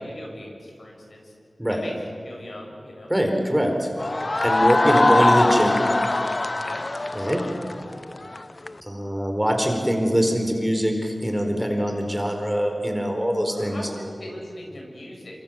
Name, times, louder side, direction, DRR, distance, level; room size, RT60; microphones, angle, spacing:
voice 1, 0.0-1.3 1.7-1.9 2.2-3.1 4.4-5.4 6.5-6.9 7.2-7.7 13.5-15.4, left 1 dB, 70° left, 0 dB, 6.8 m, -39 dB
voice 2, 3.1-5.8 7.1-7.4 8.8-13.9, equal, 5° right, 3 dB, 4.4 m, -23 dB
sound 1, 4.0-8.7, left 2 dB, 40° left, 0.6 m, -22 dB
27.5 x 25.5 x 7.5 m, 2.2 s
wide cardioid pair, 70°, 0 cm